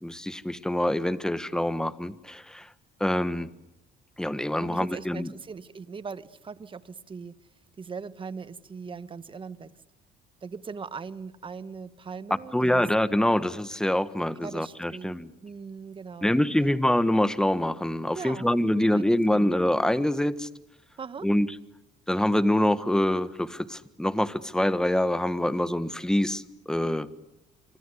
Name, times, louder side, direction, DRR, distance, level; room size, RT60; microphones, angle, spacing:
voice 1, 0.0-2.7 3.0-3.5 4.2-5.3 12.5-15.3 16.2-20.5 21.2-21.5 22.1-27.1, left 1 dB, 5° left, 13 dB, 1.4 m, -25 dB
voice 2, 4.6-7.4 7.8-9.7 10.4-12.8 14.4-16.8 18.1-19.0 19.3-19.5 21.0-21.3, right 5 dB, 30° right, 14 dB, 1.4 m, -40 dB
27.0 x 25.0 x 8.3 m, 0.89 s
cardioid pair, 110°, 17 cm